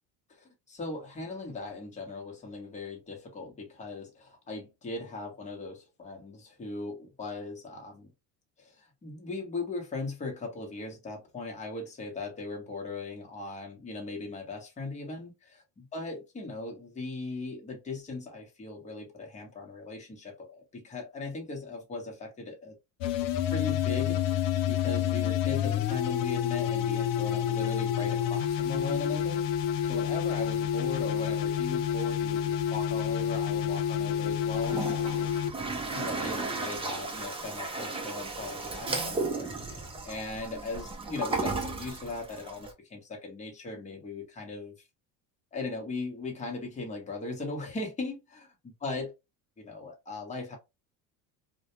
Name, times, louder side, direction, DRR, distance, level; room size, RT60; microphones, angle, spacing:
voice 1, 0.3-8.1 8.6-22.8 23.5-29.4 29.8-34.8 35.9-44.7 45.5-48.5 48.8-49.1 49.6-50.6, left 3 dB, 20° left, 0.9 m, -38 dB
sound 1, 23.0-35.5, left 9 dB, 85° left, 0.6 m, -29 dB
Toilet flush, 34.5-42.7, right 3 dB, 15° right, 0.5 m, -35 dB
2.2 x 2.2 x 2.8 m
cardioid pair, 120°, 39 cm